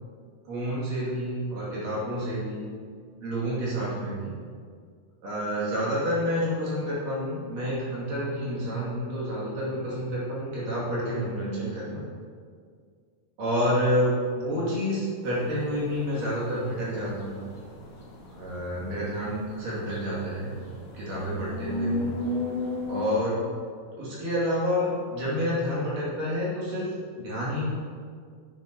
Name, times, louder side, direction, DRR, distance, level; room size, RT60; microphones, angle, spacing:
voice 1, 0.5-2.6 3.2-4.3 5.2-12.0 13.4-17.5 18.3-20.5 20.9-22.1 22.9-23.4 23.9-26.9 27.2-27.7, equal, 60° right, -8 dB, 4.0 m, -29 dB
sound 1, 15.2-23.1, left 2 dB, 75° left, 1.1 m, -36 dB
10.5 x 9.2 x 3.0 m, 2.1 s
omnidirectional pair, 4.3 m